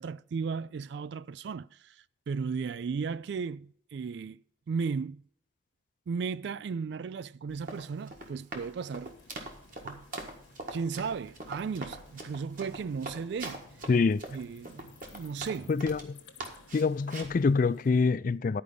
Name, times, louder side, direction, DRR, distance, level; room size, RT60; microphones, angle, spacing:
voice 1, 0.0-2.0 2.3-4.4 4.7-5.2 6.1-9.1 9.8-10.0 10.7-13.6 14.3-15.7, right 5 dB, 60° right, 0.3 m, -35 dB
Run, 7.5-16.1 16.4-17.4, right 2 dB, 40° right, 1.7 m, -42 dB
sound 1, 9.0-18.1, left 3 dB, 70° left, 1.3 m, -56 dB
voice 2, 13.9-14.2 15.7-16.2 16.7-18.6, left 4 dB, 40° left, 0.3 m, -25 dB
11.0 x 5.0 x 6.7 m
head